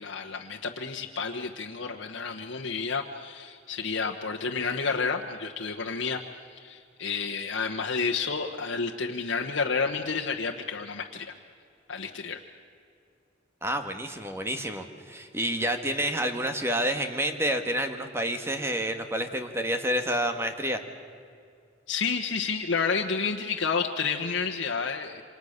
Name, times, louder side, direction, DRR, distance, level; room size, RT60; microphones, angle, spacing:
voice 1, 0.0-6.2 6.5-11.3 11.9-12.4 21.9-25.2, left 5 dB, 85° left, 0 dB, 1.2 m, -30 dB
voice 2, 13.6-20.8, right 1 dB, 15° right, 6 dB, 1.7 m, -29 dB
28.5 x 26.0 x 6.7 m, 2.3 s
head